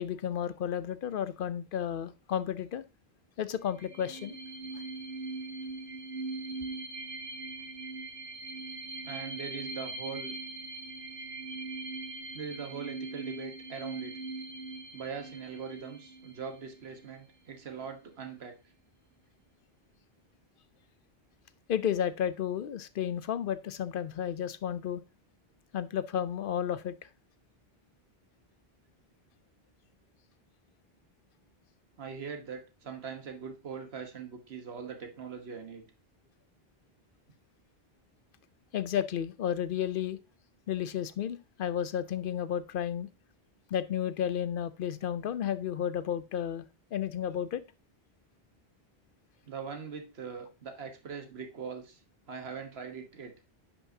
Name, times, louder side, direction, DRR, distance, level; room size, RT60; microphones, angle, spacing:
voice 1, 0.0-2.8 3.4-4.4 21.7-25.0 25.7-27.1 38.7-40.2 40.7-43.1 43.7-47.6, left 9 dB, 65° left, 14 dB, 0.7 m, -32 dB
sound 1, 3.7-17.1, right 3 dB, 60° right, 1.1 m, -41 dB
voice 2, 9.0-10.3 12.3-14.2 14.9-18.6 32.0-35.8 49.5-52.0 52.3-53.3, right 6 dB, 80° right, 5 dB, 1.4 m, -41 dB
10.0 x 5.4 x 2.7 m, 0.29 s
omnidirectional pair, 1.1 m